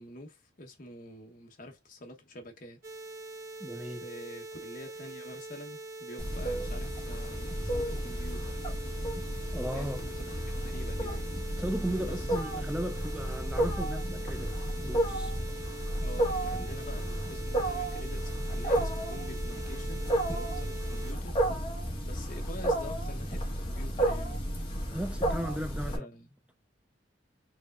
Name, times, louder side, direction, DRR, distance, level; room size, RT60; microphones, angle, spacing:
voice 1, 0.0-2.8 4.0-8.6 9.7-10.4 10.6-11.4 12.0-12.2 16.0-20.0 20.3-21.4 22.0-24.6 25.8-26.3, left 1 dB, 45° left, 1.0 m, -47 dB
sound 1, 2.8-21.1, right 2 dB, 50° right, 1.2 m, -44 dB
voice 2, 3.6-4.0 9.5-10.0 11.5-14.5 14.8-15.3 24.9-26.1, right 1 dB, 5° right, 0.3 m, -36 dB
Wild animals, 6.2-26.0, right 1 dB, 25° left, 1.3 m, -32 dB
4.7 x 3.2 x 2.4 m
head